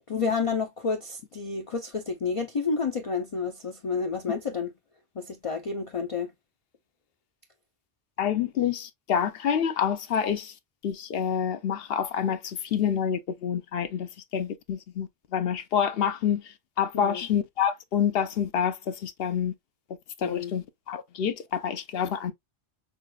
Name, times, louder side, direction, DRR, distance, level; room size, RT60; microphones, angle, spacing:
voice 1, 0.1-4.7 5.2-6.3 16.9-17.3 20.2-20.5, left 5 dB, 45° left, 0.4 m, -30 dB
voice 2, 8.2-10.5 10.8-16.4 16.8-19.5 20.2-22.3, left 8 dB, 65° left, 0.8 m, -27 dB
6.0 x 2.4 x 2.2 m
omnidirectional pair, 1.1 m